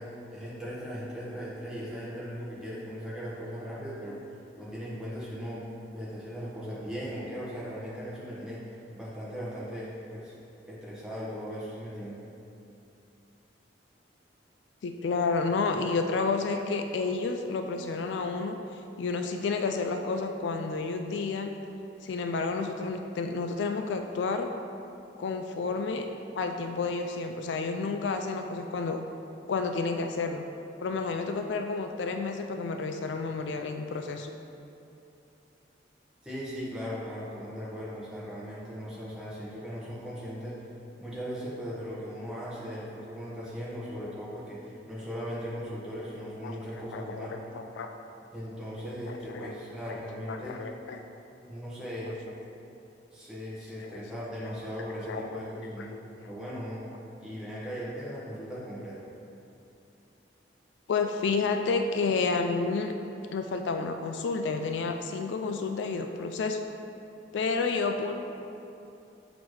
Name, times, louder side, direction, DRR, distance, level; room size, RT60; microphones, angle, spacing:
voice 1, 0.0-4.2 4.6-5.6 5.9-8.6 8.9-10.3 10.6-12.2 36.2-40.6 41.0-47.4 48.3-50.6 51.5-52.2 53.1-55.9 56.2-56.9 57.2-59.1, equal, 5° right, -8 dB, 1.1 m, -38 dB
voice 2, 14.8-18.6 19.0-21.5 22.0-24.5 25.2-26.1 26.4-29.0 29.5-30.4 30.8-34.3 46.4-46.5 46.9-47.3 47.5-47.9 49.1-49.5 49.9-50.0 50.3-51.0 53.8-54.0 55.1-55.4 55.8-56.0 56.2-56.3 60.9-62.9 63.3-66.6 67.3-68.1, left 4 dB, 75° left, 5 dB, 0.3 m, -30 dB
7.1 x 3.0 x 4.8 m, 2.7 s
head